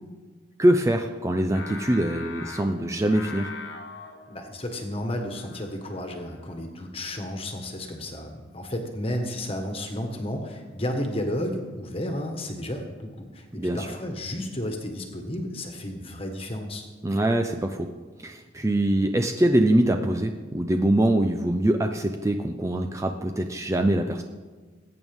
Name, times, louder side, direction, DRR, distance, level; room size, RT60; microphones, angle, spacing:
voice 1, 0.6-3.5 13.5-13.9 17.0-17.9 18.2-24.2, right 1 dB, 15° right, 5 dB, 0.5 m, -23 dB
Singing, 1.5-6.8, left 3 dB, 60° left, 1.3 m, -42 dB
voice 2, 4.3-16.8, left 1 dB, 30° left, 4 dB, 1.5 m, -32 dB
20.5 x 8.9 x 3.6 m, 1.4 s
head